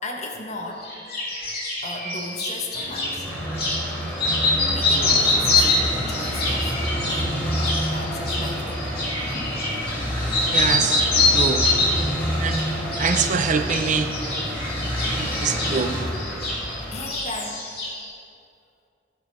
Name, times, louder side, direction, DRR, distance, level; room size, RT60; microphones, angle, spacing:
voice 1, 0.0-0.9 1.8-3.3 4.7-6.7 7.1-8.9 16.9-17.7, left 2 dB, 40° left, 0 dB, 1.1 m, -35 dB
sound 1, 0.8-3.1 3.5-3.8 4.1-10.0 10.3-12.1 12.5-13.3 13.5-16.8 17.1-18.1, left 2 dB, 55° left, 2.4 m, -24 dB
sound 2, 2.7-17.1, equal, 10° left, 2.8 m, -28 dB
voice 2, 10.5-11.7 12.4-12.6 13.0-14.1 15.1-16.0, right 5 dB, 45° right, 8 dB, 0.6 m, -24 dB
15.0 x 5.1 x 5.4 m, 2.4 s
head